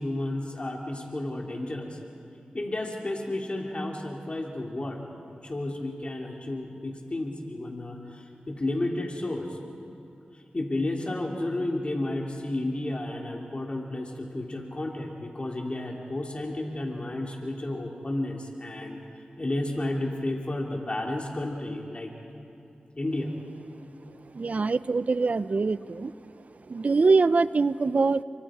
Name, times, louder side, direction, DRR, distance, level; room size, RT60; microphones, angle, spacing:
voice 1, 0.0-2.0 2.5-5.1 5.4-9.6 10.3-19.0 19.4-22.1 23.0-23.3, left 1 dB, 40° left, 0 dB, 2.9 m, -32 dB
voice 2, 24.3-26.1 26.7-28.2, right 4 dB, 55° right, 16 dB, 0.6 m, -23 dB
29.5 x 23.5 x 5.1 m, 2.7 s
cardioid pair, 60°, 3 cm